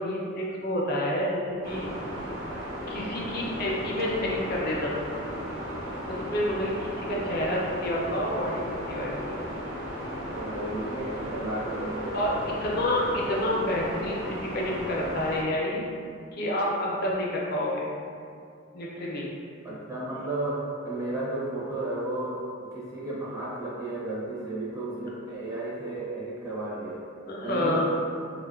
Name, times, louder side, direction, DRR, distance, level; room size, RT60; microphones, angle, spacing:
voice 1, 0.0-1.9 2.9-5.1 6.1-9.4 12.1-12.3 12.6-15.8 16.3-17.9 18.7-19.3 27.3-27.9, left 1 dB, 50° left, -3 dB, 0.4 m, -29 dB
sound 1, 1.6-15.4, equal, 85° right, 0.6 m, -35 dB
voice 2, 10.3-12.8 19.6-27.1 27.4-27.9, right 1 dB, 15° right, -8 dB, 0.4 m, -33 dB
2.4 x 2.2 x 2.3 m, 2.3 s
head